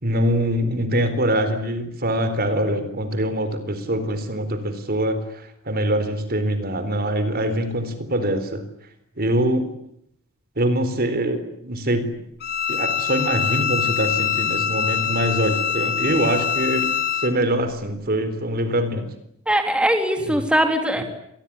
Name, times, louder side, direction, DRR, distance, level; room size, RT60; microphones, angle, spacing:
voice 1, 0.0-8.6 9.2-9.7 10.6-12.2 12.7-16.9 17.2-19.1 20.3-20.4 21.0-21.1, right 1 dB, 45° right, 10 dB, 4.0 m, -23 dB
Bowed string instrument, 12.4-17.3, left 8 dB, 50° left, 3.0 m, -24 dB
voice 2, 19.5-21.0, right 1 dB, 5° right, 5 dB, 3.4 m, -20 dB
27.0 x 20.5 x 9.9 m, 0.73 s
head